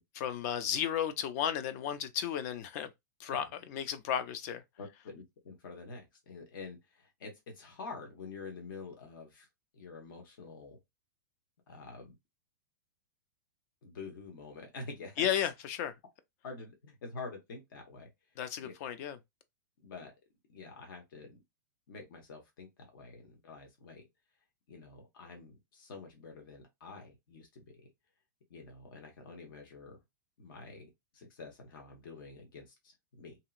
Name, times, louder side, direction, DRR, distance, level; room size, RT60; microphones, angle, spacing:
voice 1, 0.1-2.9 3.2-4.6 15.2-15.9 18.4-19.2, left 9 dB, 45° left, 0.5 m, -33 dB
voice 2, 4.8-9.5 9.7-10.8 11.7-12.1 13.8-15.5 16.4-18.1 18.6-18.7 19.8-20.1 20.5-21.4 21.9-24.1 24.7-27.8 28.5-30.0 30.4-33.4, left 4 dB, 70° left, 1.3 m, -47 dB
2.9 x 2.8 x 2.5 m
hypercardioid pair, 145°, 12 cm